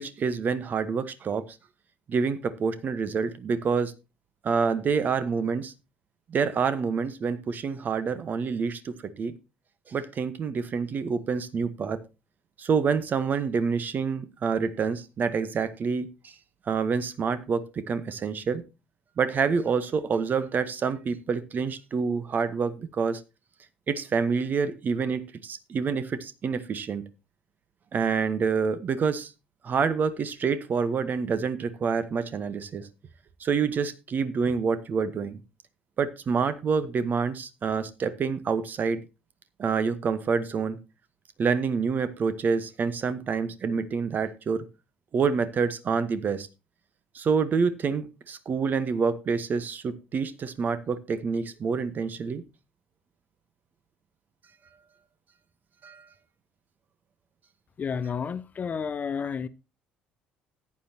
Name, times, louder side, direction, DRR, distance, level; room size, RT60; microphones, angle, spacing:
voice 1, 0.0-1.5 2.1-3.9 4.4-5.7 6.3-9.3 9.9-12.0 12.6-16.3 16.7-18.6 19.2-23.2 23.9-27.0 27.9-29.3 29.6-32.9 33.4-35.4 36.0-39.0 39.6-40.8 41.4-44.6 45.1-46.5 47.1-52.4 55.8-56.0, right 5 dB, 40° right, 1.2 m, -27 dB
voice 2, 57.8-59.5, left 6 dB, 35° left, 0.6 m, -31 dB
14.5 x 9.7 x 2.9 m
figure-of-eight pair, 50°, 5 cm